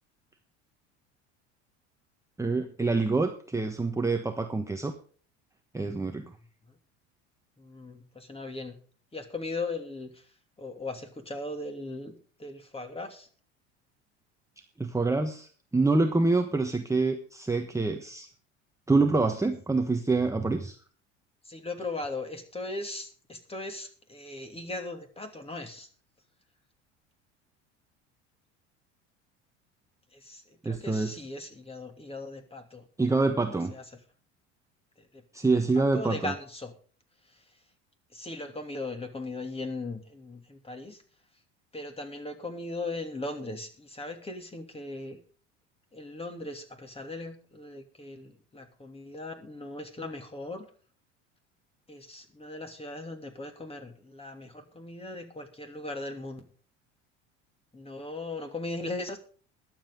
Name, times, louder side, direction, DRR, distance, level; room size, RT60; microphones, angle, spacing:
voice 1, 2.4-4.9 5.7-6.3 14.8-18.3 18.9-20.7 30.6-31.2 33.0-33.7 35.3-36.3, right 3 dB, 10° right, 5 dB, 1.2 m, -26 dB
voice 2, 7.6-8.8 9.1-10.2 10.6-13.3 21.4-25.9 30.1-32.8 33.7-33.8 35.0-35.2 35.7-36.7 38.1-41.0 41.7-45.2 45.9-50.7 51.9-56.4 57.7-59.2, left 2 dB, 15° left, 5 dB, 2.8 m, -38 dB
21.5 x 7.7 x 3.8 m, 0.43 s
hypercardioid pair, 75°, 36 cm